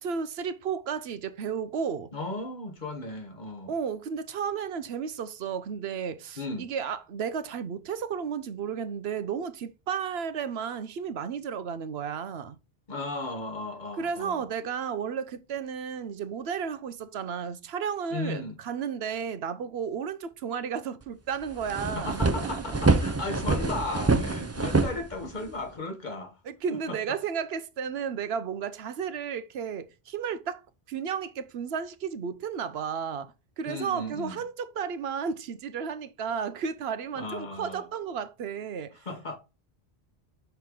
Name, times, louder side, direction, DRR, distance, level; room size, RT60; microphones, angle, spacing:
voice 1, 0.0-2.1 3.7-12.6 14.0-23.0 26.5-30.6 30.9-39.0, right 7 dB, 75° right, 0.9 m, -33 dB
voice 2, 2.1-3.8 6.4-6.7 12.9-14.5 18.1-18.6 21.8-26.4 26.7-27.2 33.6-34.4 37.1-37.9 38.9-39.4, left 2 dB, 45° left, 1.3 m, -36 dB
sound 1, 21.0-21.1 21.4-25.6, right 3 dB, 20° right, 0.4 m, -26 dB
5.8 x 4.5 x 3.6 m
omnidirectional pair, 1.1 m